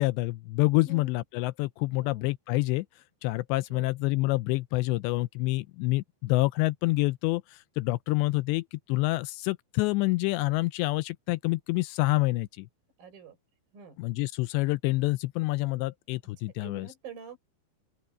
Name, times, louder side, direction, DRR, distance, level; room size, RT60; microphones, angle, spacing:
voice 1, 0.0-2.9 3.2-7.4 7.8-12.7 14.0-16.9, left 21 dB, 85° left, 2.6 m, -27 dB
voice 2, 0.8-1.2 1.8-2.3 3.7-3.9 13.0-13.4 13.7-14.0 16.6-17.4, right 5 dB, 50° right, 8.4 m, -47 dB
open air
omnidirectional pair, 5.4 m